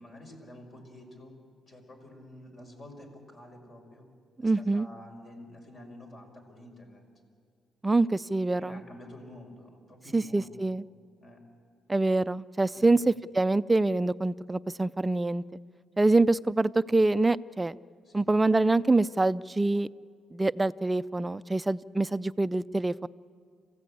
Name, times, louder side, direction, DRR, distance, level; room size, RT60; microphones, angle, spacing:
voice 1, 0.0-1.4 1.7-4.1 4.4-7.0 8.6-10.7 11.2-11.4 12.7-12.9 18.1-18.3, left 1 dB, 45° left, 3 dB, 5.3 m, -49 dB
voice 2, 4.4-4.9 7.8-8.8 10.1-10.8 11.9-15.4 16.0-17.8 18.1-19.9 20.3-23.1, right 2 dB, 15° right, 15 dB, 0.5 m, -25 dB
28.0 x 15.5 x 8.6 m, 2.1 s
cardioid pair, 90°, 0 cm